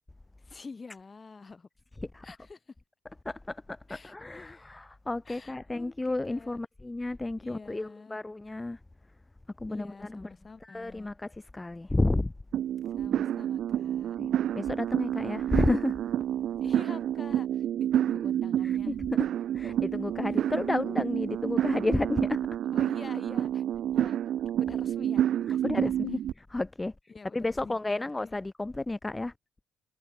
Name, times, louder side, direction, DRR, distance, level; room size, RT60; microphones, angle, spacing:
voice 1, 0.4-1.7 2.2-2.7 3.9-4.6 5.3-6.6 7.4-8.2 9.7-11.1 13.0-14.2 16.6-19.0 20.3-20.7 22.7-23.7 23.9-24.2 24.6-25.2 25.5-25.9 27.1-28.3, left 4 dB, 30° left, 5.8 m, -47 dB
voice 2, 3.2-8.8 9.6-10.3 10.6-12.3 14.2-16.0 18.6-19.3 19.5-22.5 25.5-26.9 27.3-29.3, left 2 dB, 15° left, 1.4 m, -32 dB
sound 1, 12.5-26.3, right 11 dB, 70° right, 0.5 m, -29 dB
cardioid pair, 90°, 0 cm